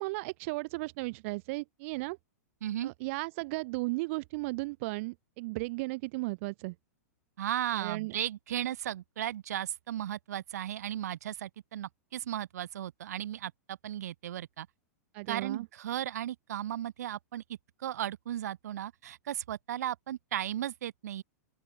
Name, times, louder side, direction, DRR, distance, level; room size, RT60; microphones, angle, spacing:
voice 1, 0.0-2.2 2.8-6.7 7.7-8.1 15.1-15.7, right 24 dB, 50° right, 1.1 m, -35 dB
voice 2, 2.6-2.9 7.4-14.7 15.3-21.2, right 11 dB, 75° right, 1.3 m, -36 dB
open air
hypercardioid pair, 120°, 9 cm